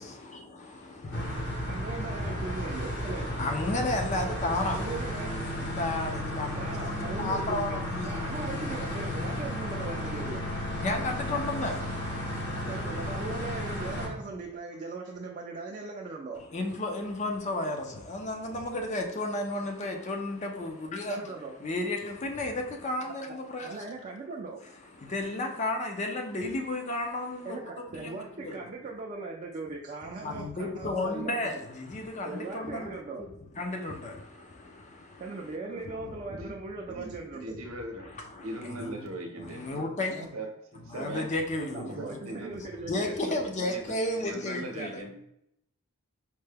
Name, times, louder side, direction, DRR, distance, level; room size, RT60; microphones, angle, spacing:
voice 1, 0.0-1.7 3.1-4.9 5.2-8.9 10.8-13.1 16.5-21.3 21.6-23.9 24.8-28.6 30.2-36.2 38.0-39.1 39.4-40.3 40.9-42.4 42.8-45.1, left 2 dB, 30° left, 0.4 m, -34 dB
sound 1, 1.1-14.1, equal, 50° left, 0.9 m, -33 dB
voice 2, 1.7-3.3 4.7-5.3 6.6-10.4 12.7-16.4 21.1-21.6 23.6-24.6 27.4-31.4 32.2-33.3 35.2-37.6 40.1-40.3 41.6-43.1, right 3 dB, 35° right, 0.4 m, -39 dB
voice 3, 36.9-38.1 38.4-39.6 40.3-41.3 42.0-42.6 42.9-43.4 43.7-45.1, right 1 dB, 70° right, 0.7 m, -40 dB
4.4 x 2.1 x 3.3 m
head